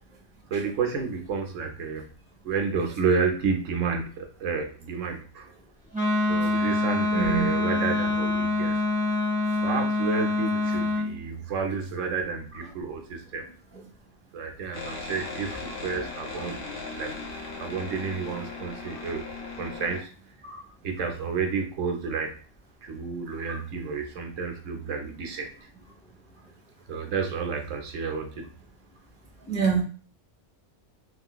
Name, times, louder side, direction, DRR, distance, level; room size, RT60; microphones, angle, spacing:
voice 1, 0.5-2.1 2.4-5.5 6.3-8.8 9.6-13.4 14.3-16.6 16.9-17.1 17.6-19.2 19.6-20.1 20.8-22.3 22.8-25.5 26.9-28.5, right 5 dB, 90° right, 3 dB, 1.1 m, -30 dB
Wind instrument woodwind instrument, 5.9-11.1, left 2 dB, 5° right, 1.3 m, -25 dB
voice 2, 7.1-7.5 8.2-8.3 16.4-17.2 20.4-20.6 23.5-23.6 29.5-29.8, right 6 dB, 10° left, -2 dB, 0.4 m, -29 dB
sound 1, 14.7-20.0, left 3 dB, 80° left, 1.1 m, -38 dB
3.2 x 2.9 x 2.2 m, 0.39 s
omnidirectional pair, 1.3 m